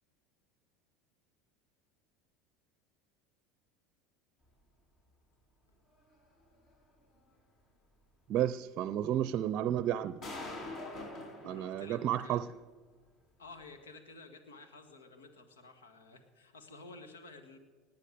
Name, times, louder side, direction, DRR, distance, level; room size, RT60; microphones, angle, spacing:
sound 1, 6.1-6.2 6.7-6.8 9.5-9.6 10.2-12.0, left 2 dB, 45° left, 4.4 m, -43 dB
voice 1, 8.3-10.2 11.5-12.5, right 11 dB, 50° right, 16 dB, 0.5 m, -32 dB
voice 2, 11.3-12.4 13.4-17.6, left 3 dB, 85° left, 8 dB, 1.8 m, -52 dB
19.5 x 8.2 x 6.9 m, 1.5 s
hypercardioid pair, 80°, 0 cm